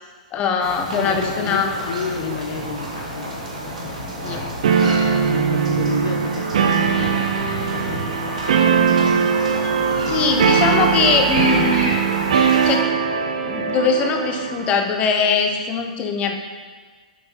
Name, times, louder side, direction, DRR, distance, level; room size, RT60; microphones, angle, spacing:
voice 1, 0.3-1.8 4.2-4.4 10.1-12.0 12.6-12.9 13.4-16.3, left 5 dB, 30° left, 4 dB, 0.9 m, -21 dB
sound 1, 0.6-12.8, right 1 dB, 80° right, 2.5 m, -29 dB
voice 2, 0.9-4.6 5.3-7.3 7.6-8.7 9.8-10.8, left 6 dB, 55° left, 5 dB, 0.8 m, -32 dB
sound 2, 4.6-14.7, right 7 dB, 65° right, 0.8 m, -20 dB
8.5 x 5.6 x 4.1 m, 1.5 s
figure-of-eight pair, 110°, 4 cm